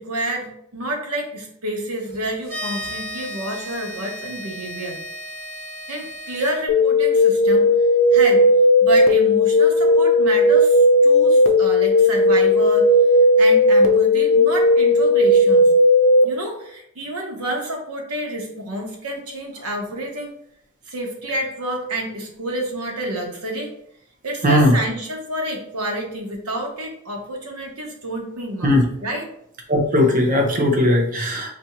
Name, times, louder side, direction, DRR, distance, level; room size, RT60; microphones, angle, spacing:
voice 1, 0.0-5.0 5.9-7.7 8.1-8.5 8.8-12.9 13.4-15.7 16.2-20.3 20.9-23.7 24.2-29.3, right 1 dB, 90° right, 1 dB, 0.9 m, -29 dB
sound 1, 2.4-6.5, right 1 dB, 70° right, 1.1 m, -34 dB
sound 2, 6.7-16.2, left 1 dB, 60° left, 0.5 m, -15 dB
voice 2, 24.4-24.8 28.6-28.8 29.7-31.5, left 1 dB, 35° right, 3 dB, 0.6 m, -17 dB
2.8 x 2.5 x 4.2 m, 0.73 s
head